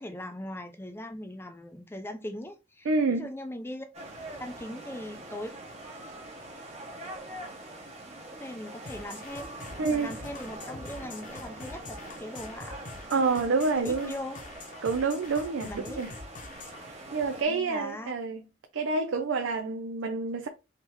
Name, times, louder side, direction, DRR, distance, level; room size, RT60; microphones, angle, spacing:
voice 1, 0.0-3.9 4.4-5.5 8.4-12.7 13.1-13.2 13.7-14.4 15.6-16.1 17.5-18.1, left 1 dB, 10° left, 0.5 m, -40 dB
voice 2, 2.9-3.3 9.8-10.1 13.1-14.1 14.8-16.1 16.9-18.4 18.7-20.5, right 4 dB, 80° right, 0.5 m, -28 dB
sound 1, 3.9-17.4, right 1 dB, 35° right, 1.0 m, -44 dB
sound 2, 8.9-16.8, left 3 dB, 45° left, 0.8 m, -45 dB
3.6 x 3.3 x 3.0 m
head